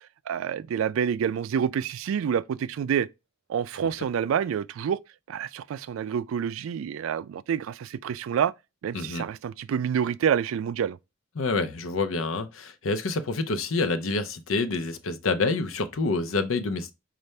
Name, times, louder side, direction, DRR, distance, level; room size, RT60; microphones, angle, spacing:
voice 1, 0.3-3.1 3.5-5.0 5.3-8.5 8.8-11.0, right 8 dB, 80° right, 0.3 m, -27 dB
voice 2, 8.9-9.3 11.4-16.9, left 3 dB, 80° left, 0.7 m, -27 dB
5.3 x 2.5 x 3.2 m
head